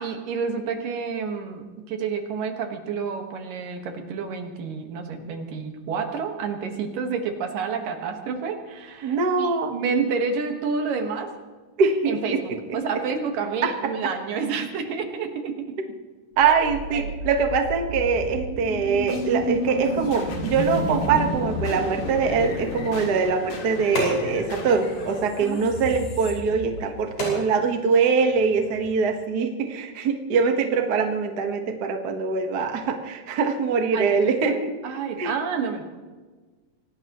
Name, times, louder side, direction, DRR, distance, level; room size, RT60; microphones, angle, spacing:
voice 1, 0.0-11.3 12.1-15.8 16.5-16.6 16.9-17.1 25.4-25.6 26.8-26.9 33.9-35.8, right 5 dB, 80° right, 5 dB, 3.2 m, -29 dB
voice 2, 9.0-9.7 11.8-12.4 13.6-13.7 16.4-34.7 35.2-35.3, right 5 dB, 50° right, 4 dB, 1.2 m, -23 dB
sound 1, 16.4-27.4, left 2 dB, 75° left, 4.0 m, -32 dB
sound 2, 22.9-28.9, left 1 dB, 90° left, 7.2 m, -37 dB
25.0 x 18.0 x 3.0 m, 1.4 s
omnidirectional pair, 3.8 m